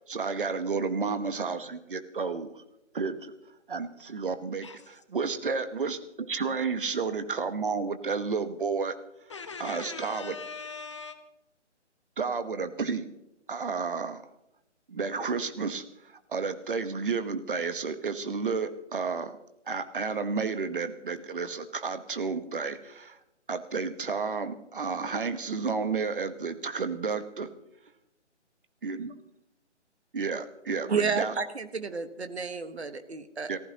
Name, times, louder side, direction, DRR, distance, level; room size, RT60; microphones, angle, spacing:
voice 1, 0.1-2.6 2.9-3.3 3.7-8.9 9.6-10.3 12.2-13.1 13.5-14.2 14.9-15.8 16.3-19.3 19.7-23.2 23.5-27.5 28.8-29.1 30.1-31.3 33.5-33.6, right 5 dB, 45° right, 1.2 m, -31 dB
voice 2, 9.3-11.2, left 5 dB, 25° left, 0.8 m, -40 dB
voice 3, 30.9-33.5, right 5 dB, 65° right, 1.4 m, -31 dB
29.5 x 15.0 x 2.9 m
figure-of-eight pair, 145°, 36 cm